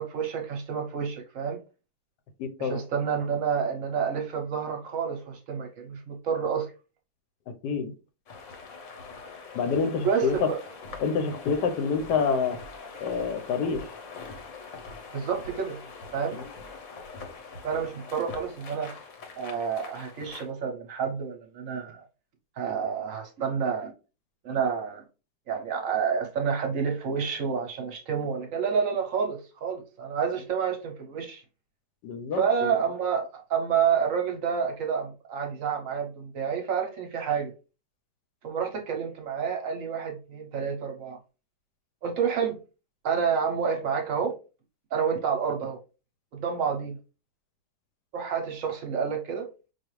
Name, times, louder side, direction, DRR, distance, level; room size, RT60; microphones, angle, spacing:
voice 1, 0.0-1.6 2.6-6.7 10.0-10.6 15.1-15.8 16.1-16.4 17.6-18.9 19.4-22.0 22.6-23.9 24.4-25.0 25.5-31.4 32.3-37.5 38.4-41.2 42.0-42.6 43.0-44.4 44.9-45.8 46.3-47.0 48.1-49.5, right 6 dB, 65° right, 0.9 m, -29 dB
voice 2, 2.4-2.8 7.6-7.9 9.5-10.5 11.0-12.6 13.0-13.9 16.3-16.5 32.0-32.8, left 5 dB, 90° left, 1.2 m, -27 dB
sound 1, 8.3-20.5, left 4 dB, 60° left, 0.9 m, -43 dB
4.7 x 2.4 x 3.0 m
omnidirectional pair, 1.8 m